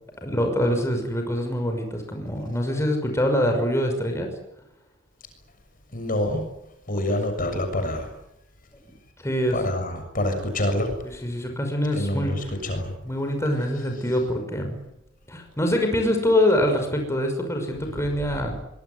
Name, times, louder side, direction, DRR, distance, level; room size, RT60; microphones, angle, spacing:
voice 1, 0.2-4.3 7.1-7.2 9.2-9.6 11.0-12.5 13.0-14.8 15.3-18.5, left 1 dB, 15° left, 3 dB, 5.8 m, -24 dB
voice 2, 5.9-6.5 6.9-8.1 9.5-10.9 11.9-12.9, left 1 dB, 45° left, 6 dB, 6.9 m, -26 dB
24.5 x 22.5 x 9.8 m, 0.82 s
head